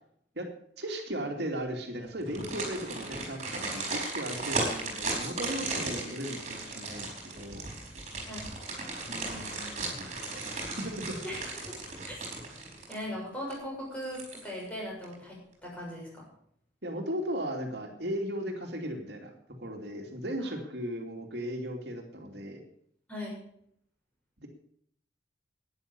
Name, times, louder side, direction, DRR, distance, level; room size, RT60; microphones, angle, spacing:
voice 1, 0.8-7.7 9.1-11.2 16.8-19.3 19.6-22.6 24.4-24.5, equal, 65° right, 2 dB, 2.6 m, -37 dB
sound 1, 2.2-13.1 13.5-13.6 14.0-14.7 15.0-15.1, right 2 dB, 35° right, 4.7 m, -36 dB
voice 2, 11.2-11.8 12.1-12.2 12.9-16.3 23.1-23.4, equal, 5° left, -5 dB, 6.8 m, -39 dB
12.0 x 10.5 x 6.9 m, 0.66 s
head